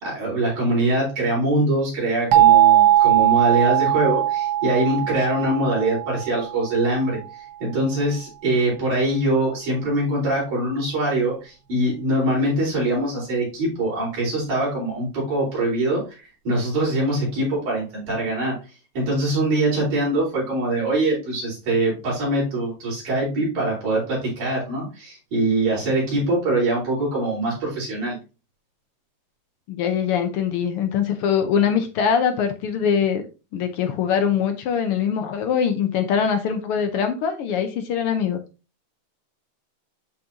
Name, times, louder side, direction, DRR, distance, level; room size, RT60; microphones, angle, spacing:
voice 1, 0.0-7.2 7.6-18.6 18.9-28.2, right 1 dB, 80° right, -5 dB, 5.7 m, -23 dB
sound 1, 2.3-7.0, right 12 dB, 60° right, 1.3 m, -19 dB
voice 2, 29.7-33.2 33.5-38.4, left 7 dB, 75° left, 7 dB, 1.3 m, -22 dB
11.5 x 3.9 x 2.9 m, 0.30 s
omnidirectional pair, 3.4 m